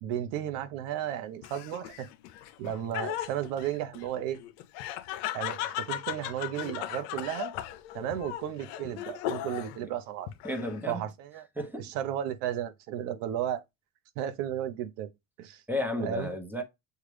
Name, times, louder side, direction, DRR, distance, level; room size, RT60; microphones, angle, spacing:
voice 1, 0.0-2.1 2.6-4.4 5.3-7.5 7.9-10.3 10.9-11.5 11.8-13.6 14.2-15.1 15.4-15.6 16.0-16.3, right 11 dB, 75° right, 0.8 m, -34 dB
Laughter, 1.4-9.8 10.3-10.9, left 13 dB, 80° left, 0.6 m, -37 dB
voice 2, 10.4-11.0 11.6-11.9 15.7-16.6, left 1 dB, 5° right, 0.8 m, -33 dB
6.5 x 2.4 x 3.3 m
supercardioid pair, 105°, 34 cm